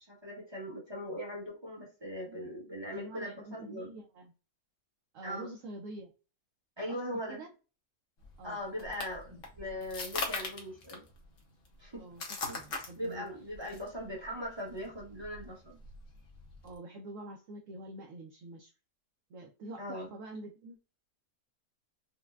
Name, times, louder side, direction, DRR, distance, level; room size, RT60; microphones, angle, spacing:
voice 1, 0.1-3.9 5.2-5.5 6.8-7.4 8.4-11.0 11.8-12.0 12.5-12.6 13.0-15.8 19.8-20.1, equal, 20° right, -3 dB, 1.0 m, -40 dB
voice 2, 2.9-4.3 5.1-6.1 6.9-7.5 8.4-8.6 12.0-13.3 13.6-13.8 16.6-18.7 19.3-20.8, right 1 dB, 65° right, 1 dB, 0.9 m, -46 dB
sound 1, 8.2-16.8, left 3 dB, 60° left, 1.2 m, -42 dB
4.7 x 2.2 x 2.3 m, 0.33 s
omnidirectional pair, 1.6 m